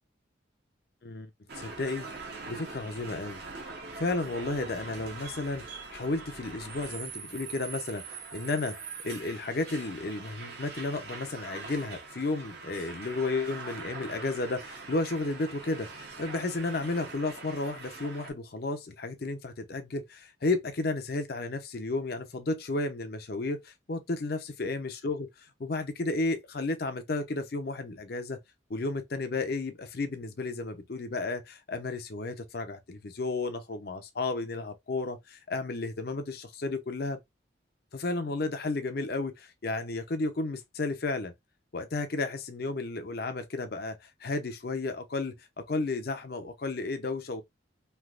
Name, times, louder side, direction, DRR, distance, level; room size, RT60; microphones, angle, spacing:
voice 1, 1.0-2.1 2.5-3.4 4.0-15.9 16.2-25.3 25.6-28.4 28.7-37.2 37.9-41.3 41.7-47.4, left 3 dB, 50° left, 0.5 m, -33 dB
sound 1, 1.5-18.3, right 4 dB, 55° right, 0.9 m, -43 dB
3.2 x 2.8 x 2.4 m
head